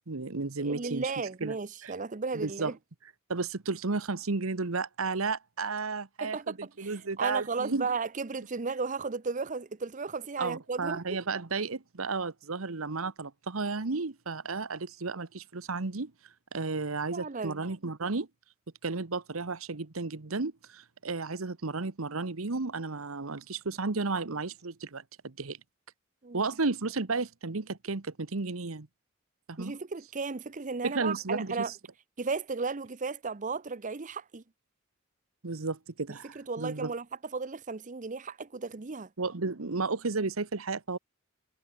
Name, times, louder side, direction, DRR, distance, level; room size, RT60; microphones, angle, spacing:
voice 1, 0.0-1.1 1.4-1.6 1.8-1.9 2.3-2.7 3.3-7.9 10.4-16.1 16.5-18.3 18.8-25.6 26.3-28.9 29.5-29.7 30.8-31.7 35.4-36.9 39.2-41.0, right 3 dB, 90° right, 1.2 m, -33 dB
voice 2, 0.6-2.7 6.2-11.2 17.1-17.6 26.2-26.5 29.6-31.7 32.2-34.4 36.3-37.0 37.3-39.1, right 4 dB, 40° right, 0.7 m, -35 dB
head